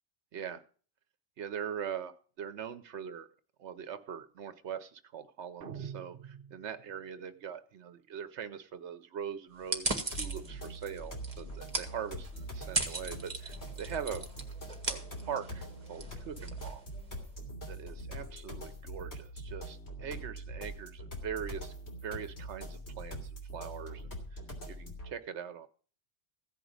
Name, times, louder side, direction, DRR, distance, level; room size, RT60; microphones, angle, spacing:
voice 1, 0.3-0.6 1.4-3.3 3.6-14.3 14.9-16.8 17.7-21.7 22.0-25.7, right 8 dB, 90° right, 11 dB, 1.1 m, -42 dB
sound 1, 5.6-7.1, right 7 dB, 55° right, 1.0 m, -45 dB
sound 2, 9.6-17.4, right 2 dB, 35° right, 1.8 m, -39 dB
sound 3, 10.1-25.1, right 1 dB, 75° left, 3.2 m, -43 dB
15.5 x 5.1 x 9.6 m, 0.43 s
omnidirectional pair, 1.1 m